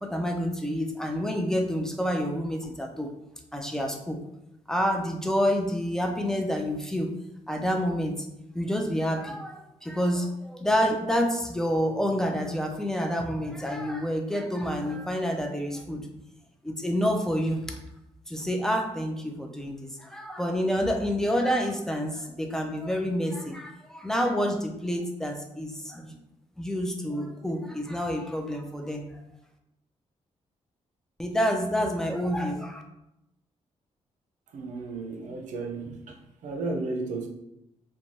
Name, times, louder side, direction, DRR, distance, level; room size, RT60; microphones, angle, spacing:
voice 1, 0.0-3.1 3.5-4.2 4.7-7.1 7.5-8.3 8.5-16.1 16.6-17.8 18.3-26.2 26.6-29.0 31.2-32.8, equal, 5° left, 3 dB, 0.4 m, -28 dB
voice 2, 34.5-37.3, right 3 dB, 85° right, 3 dB, 0.5 m, -34 dB
2.6 x 2.2 x 3.1 m, 0.84 s
cardioid pair, 90°, 12 cm